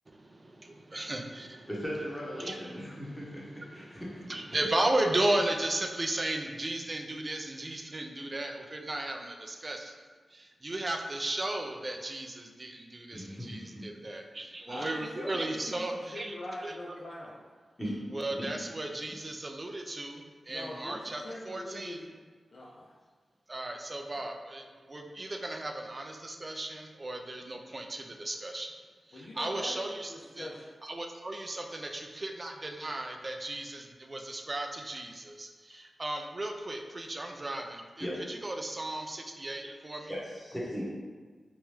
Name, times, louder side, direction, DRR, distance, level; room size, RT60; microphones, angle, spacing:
voice 1, 0.1-1.7 2.4-10.1 10.3-16.3 16.6-16.7 18.1-22.1 23.5-28.7 29.4-30.5 30.8-40.1, right 1 dB, 40° right, 3 dB, 0.4 m, -35 dB
voice 2, 1.7-4.4 13.1-14.1 17.8-18.0 18.4-18.5 38.0-38.2 40.1-40.8, equal, 10° left, -6 dB, 1.0 m, -38 dB
voice 3, 14.7-17.4 20.5-22.2 22.5-23.0 29.1-30.7, left 1 dB, 60° left, -5 dB, 0.4 m, -43 dB
3.0 x 2.2 x 3.1 m, 1.5 s
cardioid pair, 50°, 0 cm